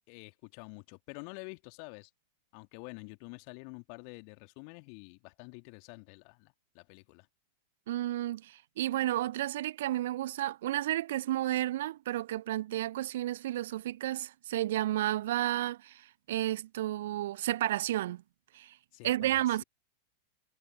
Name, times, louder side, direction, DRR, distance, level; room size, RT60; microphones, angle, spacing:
voice 1, 0.1-2.1 2.5-7.3 18.9-19.6, left 40 dB or more, 45° left, 2.6 m, -48 dB
voice 2, 7.9-18.2 18.5-18.7 19.0-19.6, right 14 dB, 55° right, 0.9 m, -32 dB
figure-of-eight pair, 90°, 0 cm